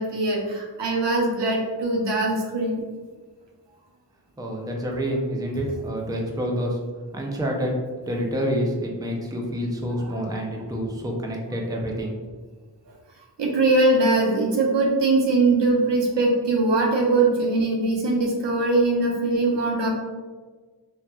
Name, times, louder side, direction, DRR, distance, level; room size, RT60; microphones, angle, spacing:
voice 1, 0.0-2.8 13.4-19.9, right 2 dB, 85° right, -1 dB, 0.6 m, -21 dB
voice 2, 4.4-6.8 7.1-7.7 8.1-12.1, equal, 10° right, 0 dB, 0.4 m, -27 dB
2.9 x 2.2 x 2.3 m, 1.4 s
wide cardioid pair, 45°, 42 cm